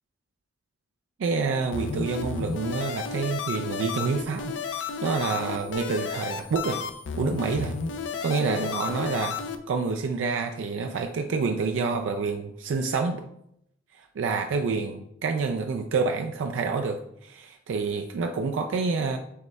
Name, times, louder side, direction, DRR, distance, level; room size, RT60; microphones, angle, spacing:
voice 1, 1.2-6.8 7.2-7.7 8.2-9.4 9.7-13.2 14.0-19.2, right 4 dB, 85° right, 5 dB, 0.3 m, -28 dB
sound 1, 1.7-9.6, left 5 dB, 75° left, 0.4 m, -32 dB
6.4 x 3.1 x 2.2 m, 0.76 s
head